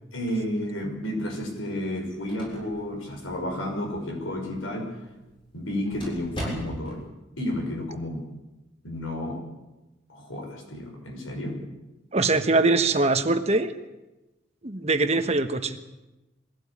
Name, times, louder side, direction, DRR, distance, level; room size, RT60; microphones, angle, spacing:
voice 1, 0.1-4.9 5.5-7.0 7.4-8.2 8.8-9.4 10.1-11.6, left 1 dB, 85° left, 2 dB, 5.9 m, -31 dB
sound 1, 1.8-7.1, equal, 25° left, 7.3 m, -41 dB
voice 2, 12.1-13.7 14.6-15.8, right 3 dB, 30° right, 8 dB, 1.2 m, -22 dB
22.5 x 16.5 x 8.7 m, 1.0 s
head